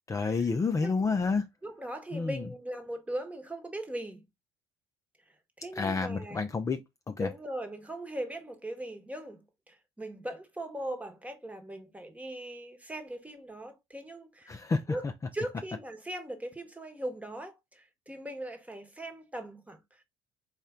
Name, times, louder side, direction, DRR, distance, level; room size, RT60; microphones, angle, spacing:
voice 1, 0.1-1.4 2.1-2.4 5.8-6.8 7.1-7.3 14.5-14.8, left 4 dB, 25° left, 0.5 m, -29 dB
voice 2, 1.6-4.3 5.3-6.4 7.2-14.5 14.9-15.1 15.3-20.0, right 1 dB, 10° right, 1.1 m, -39 dB
4.2 x 2.4 x 3.7 m
hypercardioid pair, 55°, 14 cm